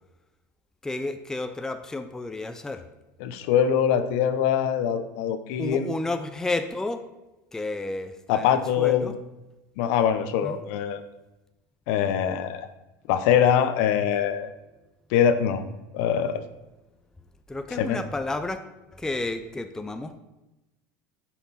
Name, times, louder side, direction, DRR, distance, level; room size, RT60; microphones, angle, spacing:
voice 1, 0.8-2.8 5.6-7.0 7.5-9.1 10.4-10.6 17.5-18.6 18.9-20.2, left 2 dB, 5° left, 8 dB, 0.5 m, -31 dB
voice 2, 3.2-5.9 8.3-9.1 9.8-11.0 11.9-12.7 13.1-14.5 15.1-15.6 15.9-16.4 17.8-18.0, left 9 dB, 70° left, 10 dB, 0.8 m, -23 dB
10.0 x 5.8 x 4.2 m, 1.0 s
supercardioid pair, 135°, 8 cm